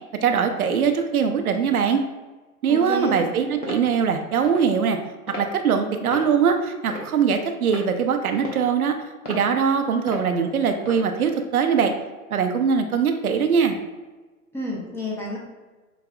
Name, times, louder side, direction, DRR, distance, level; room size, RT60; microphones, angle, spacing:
voice 1, 0.2-2.0 2.6-5.0 5.4-9.0 9.3-11.9 12.3-13.8, right 6 dB, 75° right, 6 dB, 0.6 m, -21 dB
voice 2, 2.7-3.3 14.5-15.4, left 1 dB, 5° left, -4 dB, 0.6 m, -30 dB
sound 1, 3.6-3.8 4.4-4.6 5.3-5.5 6.1-6.3 6.9-7.2 7.7-7.9 8.4-8.7 9.2-9.4 10.1-10.3 10.8-11.0, left 1 dB, 90° left, 1.0 m, -33 dB
6.8 x 2.7 x 2.4 m, 1.2 s
figure-of-eight pair, 100°, 44 cm